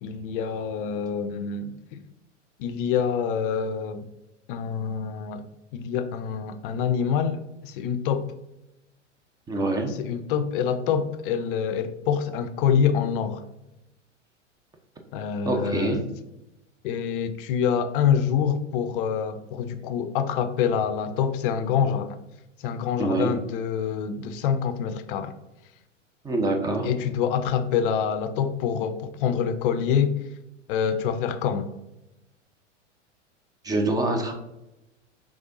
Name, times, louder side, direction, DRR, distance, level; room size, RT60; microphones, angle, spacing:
voice 1, 0.0-2.0 2.6-4.1 4.5-5.5 5.7-8.3 9.8-13.4 15.1-16.0 16.8-22.2 22.6-25.3 26.8-30.2 30.7-31.7, left 7 dB, 45° left, 0.5 m, -26 dB
voice 2, 9.5-9.9 15.4-16.0 23.0-23.3 26.2-26.9 33.6-34.3, right 2 dB, 10° right, 0.5 m, -25 dB
5.0 x 3.3 x 2.6 m
hypercardioid pair, 100°, 37 cm